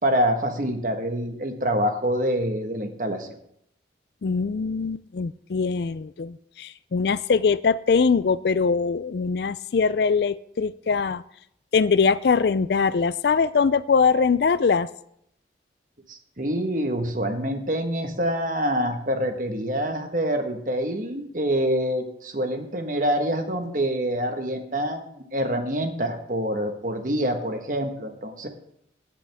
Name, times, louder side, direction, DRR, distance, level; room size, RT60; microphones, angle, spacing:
voice 1, 0.0-3.3 16.1-28.5, equal, 45° right, 6 dB, 1.4 m, -26 dB
voice 2, 4.2-11.2 11.7-14.9, left 5 dB, 60° left, 17 dB, 0.4 m, -22 dB
16.5 x 9.9 x 3.5 m, 0.74 s
head